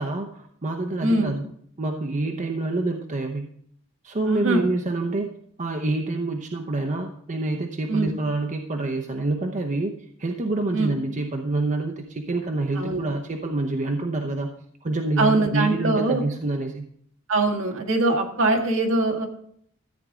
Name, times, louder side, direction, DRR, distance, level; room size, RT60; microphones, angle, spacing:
voice 1, 0.0-1.4 1.8-3.5 4.0-5.3 5.6-14.5 14.8-16.9, right 2 dB, 35° right, 3 dB, 0.8 m, -27 dB
voice 2, 4.2-4.6 7.9-8.1 10.7-10.9 12.8-13.0 15.2-16.2 17.3-19.3, right 2 dB, 65° right, 3 dB, 1.7 m, -22 dB
14.0 x 8.6 x 3.7 m, 0.66 s
head